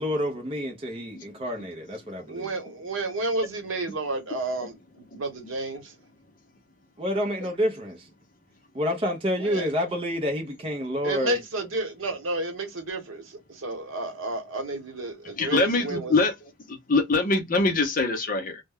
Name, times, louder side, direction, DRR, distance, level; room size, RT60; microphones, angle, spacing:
voice 1, 0.0-2.5 7.0-8.1 8.7-11.4, equal, 25° right, 0.5 m, -28 dB
voice 2, 2.3-5.9 9.4-9.7 11.0-16.2, right 2 dB, 70° right, 1.0 m, -31 dB
voice 3, 15.4-16.3 16.7-18.6, left 3 dB, 40° left, 0.6 m, -24 dB
2.1 x 2.1 x 3.3 m
head